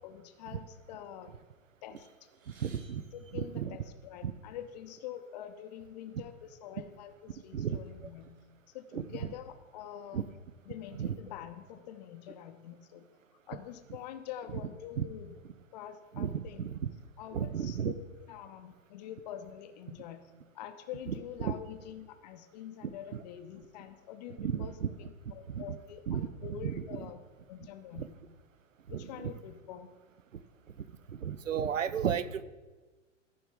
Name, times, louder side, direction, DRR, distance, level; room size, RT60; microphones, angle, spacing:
voice 1, 0.0-1.4 1.8-2.1 3.1-8.4 8.7-10.2 10.7-13.0 13.5-15.4 15.7-16.7 17.2-20.2 20.5-27.2 27.5-28.1 28.9-29.9, left 10 dB, 35° left, 8 dB, 0.7 m, -46 dB
sound 1, 2.0-4.3 5.1-5.3 5.6-5.8 6.6-6.8 7.3-8.4, right 4 dB, 35° right, 1.9 m, -63 dB
voice 2, 2.6-3.0 3.3-3.8 4.2-4.3 7.5-7.8 8.9-9.0 10.1-10.2 10.9-11.2 15.0-15.1 16.1-16.8 17.3-17.9 21.4-21.5 22.8-23.2 24.4-24.9 25.5-25.8 26.1-26.3 26.6-27.0 28.0-28.1 28.9-29.3 31.1-32.4, right 8 dB, 75° right, 15 dB, 0.6 m, -33 dB
14.5 x 5.1 x 3.5 m, 1.3 s
figure-of-eight pair, 105°, 39 cm